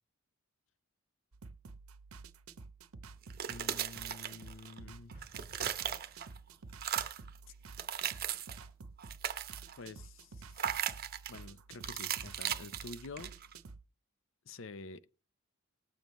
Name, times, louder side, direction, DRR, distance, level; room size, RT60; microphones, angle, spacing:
sound 1, 1.3-13.8, right 4 dB, 80° right, 0.8 m, -51 dB
sound 2, 3.2-4.8 5.1-6.4 6.7-7.3 7.7-8.6 9.0-9.8 10.6-11.4 11.8-13.5, right 9 dB, 45° right, 0.8 m, -37 dB
voice 1, 3.5-5.1 9.8-10.9 11.3-13.3 14.4-15.1, left 3 dB, 60° left, 0.6 m, -49 dB
Explosion, 5.1-6.8, equal, 35° left, 2.6 m, -63 dB
20.0 x 7.2 x 3.1 m
head